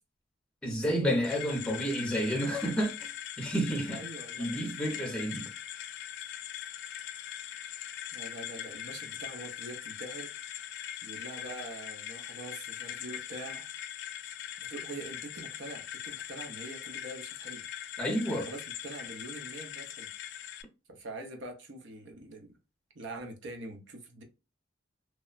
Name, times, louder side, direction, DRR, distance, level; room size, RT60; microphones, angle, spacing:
voice 1, 0.6-3.1 3.4-4.0 4.4-5.5 18.0-18.5, equal, 5° left, 0.6 m, -30 dB
sound 1, 1.2-20.6, left 11 dB, 60° left, 0.3 m, -41 dB
voice 2, 3.9-4.5 8.1-10.3 11.0-13.7 14.6-17.6 18.0-20.1 20.9-22.5 22.9-24.2, right 2 dB, 65° right, 0.7 m, -44 dB
3.0 x 2.1 x 2.4 m
head